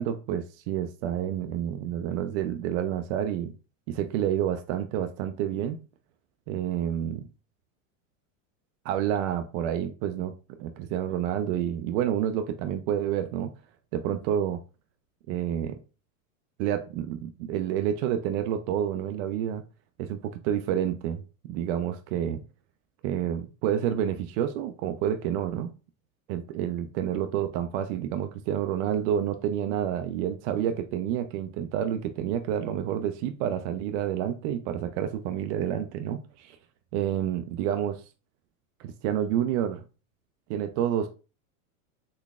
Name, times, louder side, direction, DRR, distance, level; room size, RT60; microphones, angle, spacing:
voice 1, 0.0-3.5 3.9-5.8 6.5-7.3 8.8-13.5 13.9-14.6 15.3-15.8 16.6-19.6 20.0-22.4 23.0-25.7 26.3-36.6 36.9-38.0 38.8-39.8 40.5-41.1, right 10 dB, 60° right, 0.5 m, -29 dB
4.0 x 3.1 x 2.3 m
supercardioid pair, 125°, 41 cm